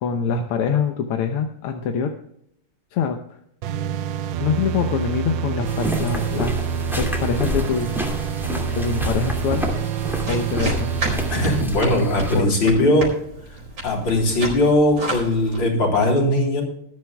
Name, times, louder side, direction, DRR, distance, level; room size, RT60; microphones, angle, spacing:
voice 1, 0.0-2.1 2.9-3.2 4.4-8.0 8.8-9.7 10.3-10.9 12.4-13.0, left 6 dB, 85° left, 5 dB, 1.8 m, -24 dB
sound 1, 3.6-11.6, right 7 dB, 70° right, 1.2 m, -27 dB
sound 2, 5.6-12.4, equal, ahead, 2.0 m, -29 dB
sound 3, 10.3-15.6, right 1 dB, 55° right, 5.2 m, -31 dB
voice 2, 11.3-13.1 13.8-16.6, left 1 dB, 55° left, 0 dB, 4.2 m, -19 dB
19.5 x 12.0 x 2.3 m, 0.73 s
omnidirectional pair, 2.4 m